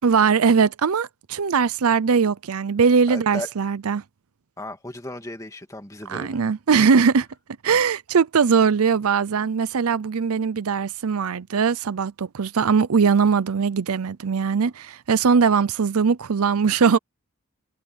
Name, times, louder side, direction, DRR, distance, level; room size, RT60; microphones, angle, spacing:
voice 1, 0.0-4.0 6.1-7.3 7.6-17.0, right 6 dB, 80° right, 0.6 m, -20 dB
voice 2, 3.1-3.5 4.6-6.4, left 1 dB, 15° left, 2.5 m, -35 dB
head